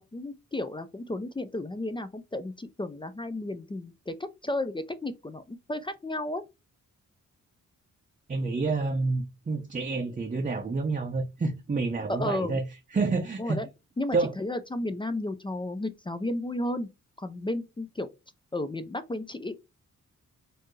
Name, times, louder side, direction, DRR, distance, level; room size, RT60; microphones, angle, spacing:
voice 1, 0.0-4.1 4.4-6.4 12.1-12.6 13.4-13.7 14.0-16.9 17.2-18.1 18.5-19.6, left 1 dB, 15° left, 0.4 m, -33 dB
voice 2, 8.3-12.6 12.9-13.6 14.1-14.3, right 3 dB, 25° right, 0.6 m, -28 dB
4.4 x 2.7 x 3.1 m
cardioid pair, 95°, 31 cm